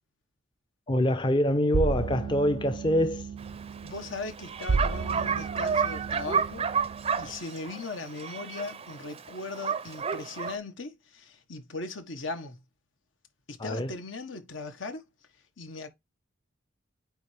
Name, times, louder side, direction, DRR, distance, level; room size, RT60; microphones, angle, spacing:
voice 1, 0.9-3.3 13.6-13.9, equal, 25° left, 0.5 m, -25 dB
sound 1, 1.7-7.4, right 4 dB, 85° right, 0.5 m, -33 dB
Bark, 3.4-10.6, right 6 dB, 30° right, 0.5 m, -31 dB
voice 2, 3.8-6.7 7.2-12.6 13.5-15.0 15.6-15.9, left 3 dB, 80° left, 1.3 m, -38 dB
8.9 x 3.3 x 3.3 m
head